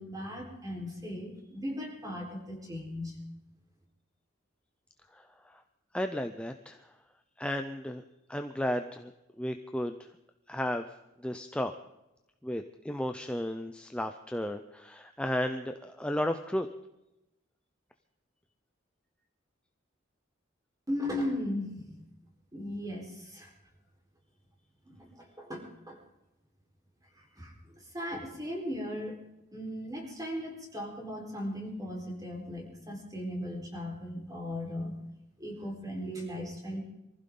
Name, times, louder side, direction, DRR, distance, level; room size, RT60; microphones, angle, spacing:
voice 1, 0.0-3.2 20.9-22.0 22.5-23.5 24.8-26.0 27.4-29.2 29.5-35.0 35.4-36.8, left 1 dB, 20° right, 0 dB, 4.4 m, -37 dB
voice 2, 5.1-5.6 5.9-6.8 7.4-8.0 8.3-9.1 9.4-10.0 10.5-10.8 11.2-11.7 12.4-16.7, left 1 dB, 5° left, 6 dB, 0.6 m, -33 dB
24.0 x 15.0 x 3.9 m, 0.93 s
head